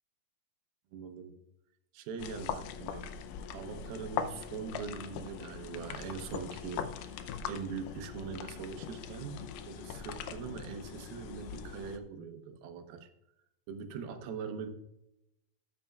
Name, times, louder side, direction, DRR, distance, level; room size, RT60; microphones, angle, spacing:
voice 1, 0.9-1.4 1.9-3.1 3.5-7.2 7.5-13.1 13.7-14.7, right 5 dB, 80° right, 7 dB, 2.7 m, -42 dB
sound 1, 2.2-12.0, left 7 dB, 80° left, 2.1 m, -41 dB
13.0 x 8.9 x 2.3 m, 0.85 s
omnidirectional pair, 4.3 m